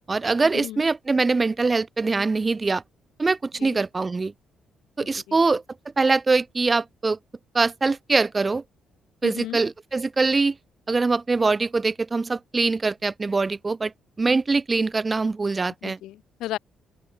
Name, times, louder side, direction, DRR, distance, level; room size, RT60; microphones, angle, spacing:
voice 1, 0.1-2.8 3.2-4.3 5.0-5.6 6.0-7.2 7.5-8.6 9.2-10.6 10.9-13.9 14.2-16.0, right 3 dB, 25° right, 0.9 m, -23 dB
voice 2, 9.2-9.6 15.8-16.6, left 14 dB, 85° left, 1.8 m, -34 dB
open air
cardioid pair, 90°, 0 cm